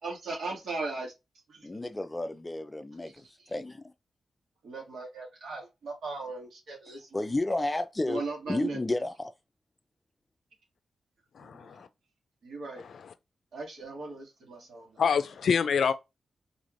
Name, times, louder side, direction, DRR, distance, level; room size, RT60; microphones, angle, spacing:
voice 1, 0.0-1.1 1.5-1.9 4.6-7.2 8.1-8.8 11.4-11.8 12.4-12.8 13.5-14.9, right 3 dB, 80° right, 1.9 m, -38 dB
voice 2, 1.6-3.9 7.1-8.2 8.5-9.3, left 2 dB, 25° left, 0.5 m, -32 dB
voice 3, 11.3-11.9 12.8-13.1 15.0-15.9, left 6 dB, 80° left, 0.4 m, -27 dB
4.1 x 3.0 x 2.6 m
cardioid pair, 60°, 0 cm